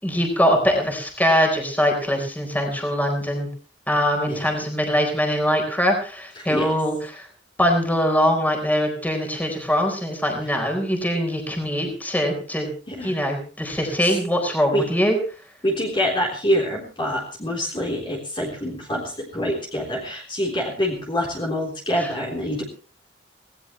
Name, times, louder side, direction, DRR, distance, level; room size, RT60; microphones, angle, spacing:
voice 1, 0.0-3.5 3.9-7.3 7.6-12.7 13.0-15.2, equal, 10° left, 3 dB, 4.2 m, -22 dB
voice 2, 4.3-4.7 6.4-6.7 10.4-10.6 12.9-13.2 13.8-14.2 14.7-14.9 15.6-22.6, equal, 25° left, -1 dB, 3.6 m, -26 dB
18.5 x 17.5 x 3.2 m, 0.38 s
head